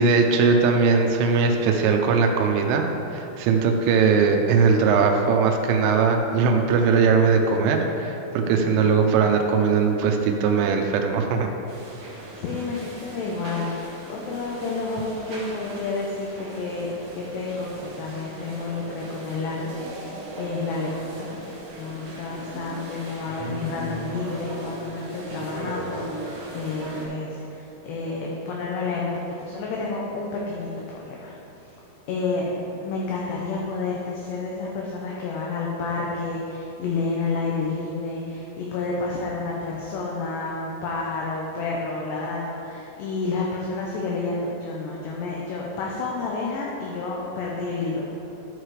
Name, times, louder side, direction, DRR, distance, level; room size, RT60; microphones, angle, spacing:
voice 1, 0.0-2.9 3.1-11.5, right 5 dB, 90° right, 3 dB, 3.2 m, -20 dB
voice 2, 8.4-8.8 12.1-31.4 31.7-31.8 32.1-48.1, left 3 dB, 75° left, -3 dB, 2.7 m, -30 dB
sound 1, 11.7-27.1, right 1 dB, 65° right, 1.7 m, -38 dB
12.5 x 4.8 x 4.7 m, 2.8 s
omnidirectional pair, 5.6 m